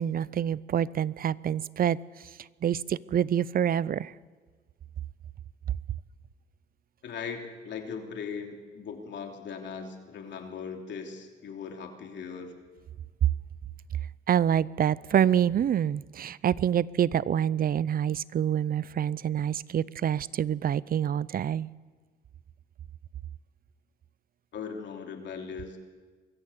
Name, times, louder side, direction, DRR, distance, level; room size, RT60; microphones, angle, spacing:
voice 1, 0.0-2.0 2.6-4.1 14.3-21.7, right 9 dB, 50° right, 21 dB, 0.6 m, -26 dB
voice 2, 7.0-12.5 24.5-25.8, left 6 dB, 65° left, 3 dB, 3.1 m, -39 dB
23.0 x 14.5 x 8.2 m, 1.4 s
cardioid pair, 90°, 20 cm